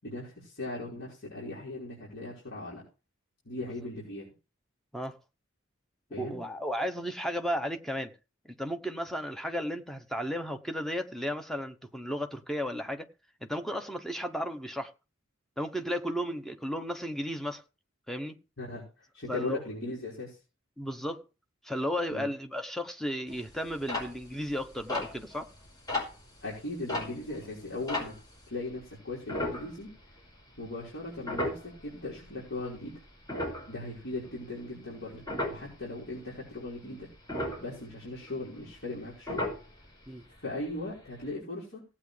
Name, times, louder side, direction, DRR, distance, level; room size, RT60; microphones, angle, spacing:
voice 1, 0.0-2.8 3.4-4.3 6.1-6.4 18.6-18.8 19.1-20.4 22.1-22.3 26.4-28.2 28.5-29.9 30.6-33.0 33.7-37.1 37.6-39.5 40.4-41.8, left 2 dB, 65° left, 5.1 m, -38 dB
voice 2, 6.2-8.1 8.4-13.1 13.4-14.9 15.6-17.6 18.1-18.4 19.3-19.6 20.8-21.2 21.6-25.5 40.1-40.2, equal, ahead, 1.0 m, -34 dB
sound 1, 23.3-28.5 29.3-30.2 30.6-30.7 31.2-32.5 32.9-35.8 36.2-36.7 37.0-39.0 39.3-40.1 40.4-40.5 40.7-40.9 41.3-41.4, left 1 dB, 20° left, 5.2 m, -36 dB
17.5 x 8.5 x 3.4 m
head